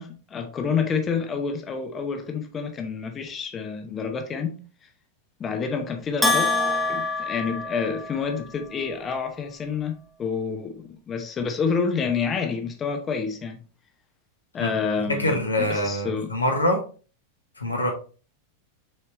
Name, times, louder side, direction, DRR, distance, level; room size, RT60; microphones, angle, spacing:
voice 1, 0.0-4.6 5.4-13.6 14.5-16.3, left 5 dB, 25° left, 1.0 m, -28 dB
Bell, 6.2-8.4, left 3 dB, ahead, 1.1 m, -25 dB
voice 2, 15.2-16.8 17.6-17.9, left 1 dB, 80° left, 1.5 m, -24 dB
6.4 x 4.5 x 3.2 m
figure-of-eight pair, 90°, 0 cm